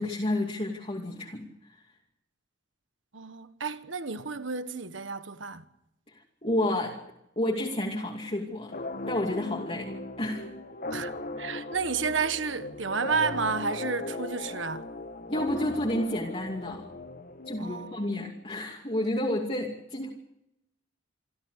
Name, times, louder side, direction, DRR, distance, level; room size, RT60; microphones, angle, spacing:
voice 1, 0.0-1.5 6.4-7.0 7.4-8.7 9.1-9.9 10.2-10.5 15.3-16.8 17.5-20.1, left 1 dB, 30° left, 2.6 m, -30 dB
voice 2, 3.1-5.6 10.9-14.9 17.6-18.3, right 5 dB, 85° right, 1.5 m, -32 dB
sound 1, 8.7-18.2, left 2 dB, 50° left, 1.4 m, -38 dB
27.5 x 13.5 x 8.2 m
head